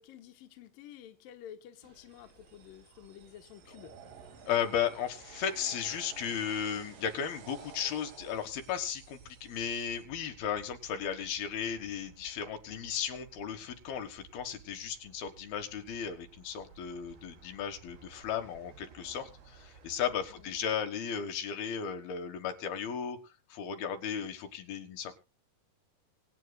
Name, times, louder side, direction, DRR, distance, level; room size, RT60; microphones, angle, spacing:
voice 1, 0.0-3.9 20.3-20.5, left 10 dB, 70° left, 5 dB, 2.8 m, -51 dB
sound 1, 1.8-20.7, right 6 dB, 90° right, 4.9 m, -58 dB
sound 2, 2.1-10.0, right 5 dB, 65° right, 3.9 m, -53 dB
voice 2, 4.5-23.2 23.5-25.1, left 8 dB, 90° left, 6 dB, 3.4 m, -35 dB
24.5 x 9.2 x 2.3 m, 0.29 s
omnidirectional pair, 4.2 m